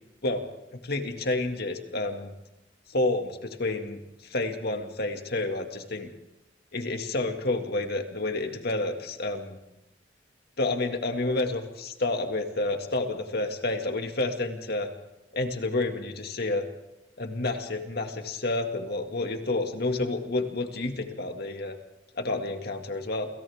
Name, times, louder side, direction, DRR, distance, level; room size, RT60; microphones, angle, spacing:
voice 1, 0.7-2.3 2.9-6.1 6.7-9.6 10.6-14.9 15.3-16.7 17.2-21.8 22.1-23.3, left 2 dB, 55° left, 5 dB, 2.2 m, -29 dB
29.0 x 27.5 x 3.6 m, 0.94 s
head